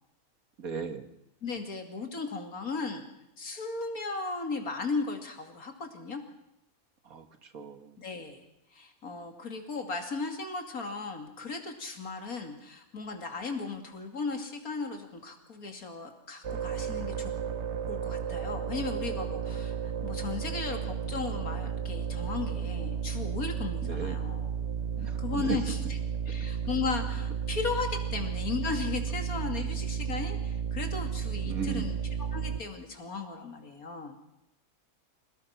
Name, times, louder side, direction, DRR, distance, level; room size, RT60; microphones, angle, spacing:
voice 1, 0.6-1.0 7.1-7.3 7.5-7.9 23.8-24.2 25.0-25.6 31.4-31.9, right 6 dB, 80° right, 8 dB, 2.1 m, -35 dB
voice 2, 1.4-3.0 3.4-6.2 8.0-8.4 8.7-17.3 17.9-24.5 25.0-26.0 26.3-32.0 32.3-34.2, left 4 dB, 85° left, 5 dB, 3.0 m, -36 dB
sound 1, 16.4-32.6, right 8 dB, 55° right, 1.3 m, -33 dB
26.5 x 19.0 x 5.9 m, 0.84 s
omnidirectional pair, 1.5 m